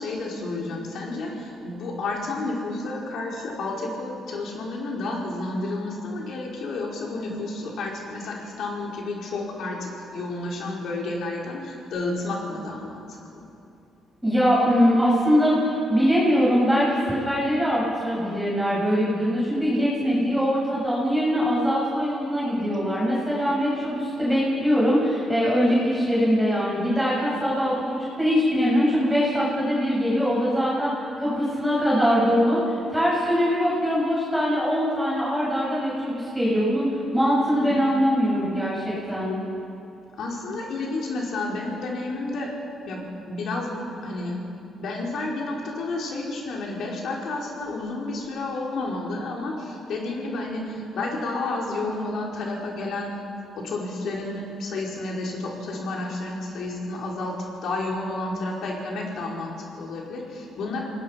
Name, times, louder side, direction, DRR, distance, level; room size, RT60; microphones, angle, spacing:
voice 1, 0.0-13.2 37.6-37.8 40.2-42.5 42.9-44.4 44.8-53.2 53.6-60.8, left 2 dB, 70° left, -2 dB, 4.8 m, -31 dB
voice 2, 14.2-32.6 32.9-36.9 37.1-39.4, equal, ahead, -8 dB, 7.5 m, -22 dB
27.5 x 19.0 x 5.9 m, 2.7 s
cardioid pair, 90°, 0 cm